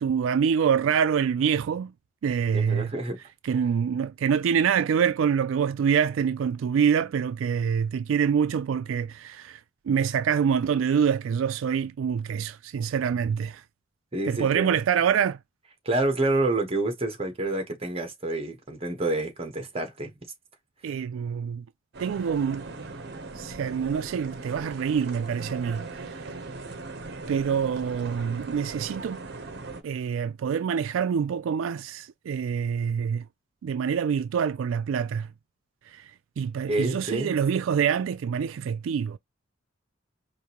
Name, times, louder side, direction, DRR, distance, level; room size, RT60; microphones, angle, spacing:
voice 1, 0.0-1.9 2.2-2.9 3.4-9.6 9.9-13.6 14.3-15.4 20.8-21.6 22.0-22.7 23.4-26.2 27.3-29.2 29.8-33.3 33.6-35.3 35.9-36.1 36.4-39.2, right 7 dB, 80° right, 0.3 m, -26 dB
voice 2, 2.5-3.2 14.1-14.8 15.8-20.1 36.7-37.4, right 2 dB, 30° right, 1.2 m, -28 dB
sound 1, 21.9-29.8, right 3 dB, 55° right, 0.8 m, -39 dB
5.0 x 2.6 x 2.9 m
head